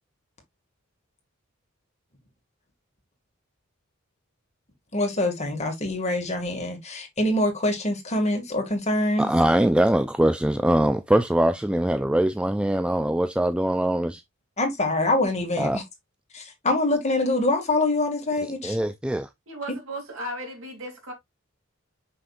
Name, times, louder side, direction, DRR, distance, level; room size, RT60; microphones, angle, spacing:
voice 1, 4.9-9.3 14.6-15.8 16.3-18.8, left 2 dB, 35° left, 2.2 m, -25 dB
voice 2, 9.2-14.2 15.6-15.8 18.6-19.3, right 1 dB, 5° right, 0.3 m, -22 dB
voice 3, 19.5-21.1, right 1 dB, 75° right, 3.1 m, -35 dB
6.4 x 5.7 x 2.5 m
head